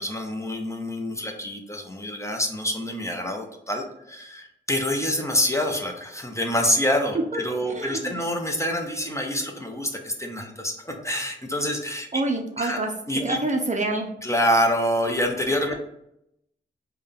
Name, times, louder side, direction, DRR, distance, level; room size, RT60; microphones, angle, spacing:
voice 1, 0.0-12.2 12.6-12.8 13.1-13.4 14.2-15.7, equal, 15° left, 3 dB, 0.6 m, -26 dB
voice 2, 7.7-8.2 12.1-12.9 13.2-14.1, right 2 dB, 35° right, 2 dB, 0.5 m, -27 dB
3.6 x 2.2 x 3.5 m, 0.78 s
cardioid pair, 60°, 21 cm